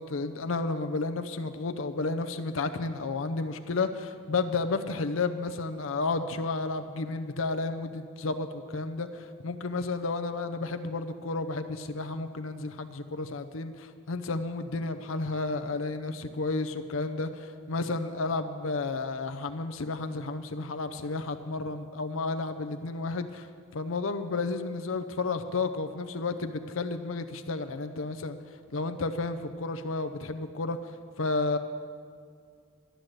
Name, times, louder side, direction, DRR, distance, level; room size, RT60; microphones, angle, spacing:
voice 1, 0.0-23.5 23.7-28.4 28.7-31.6, left 3 dB, 80° left, 8 dB, 0.7 m, -32 dB
12.5 x 10.5 x 7.8 m, 2.1 s
head